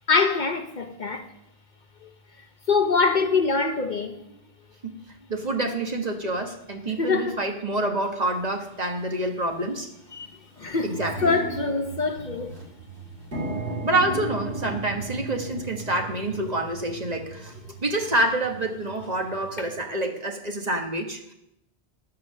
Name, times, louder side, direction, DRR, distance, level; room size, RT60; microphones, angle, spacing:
voice 1, 0.1-1.3 2.0-2.1 2.7-4.2 6.9-7.4 10.1-10.9 11.2-12.6 19.6-19.7, left 4 dB, 50° left, 0.9 m, -24 dB
voice 2, 5.3-9.9 10.8-11.3 13.8-17.5 17.8-21.3, right 1 dB, 40° right, 1.4 m, -27 dB
sound 1, 8.2-8.3 9.1-9.3 9.7-9.8 10.1-19.8, right 2 dB, 80° right, 3.5 m, -36 dB
10.0 x 8.7 x 6.5 m
omnidirectional pair, 1.1 m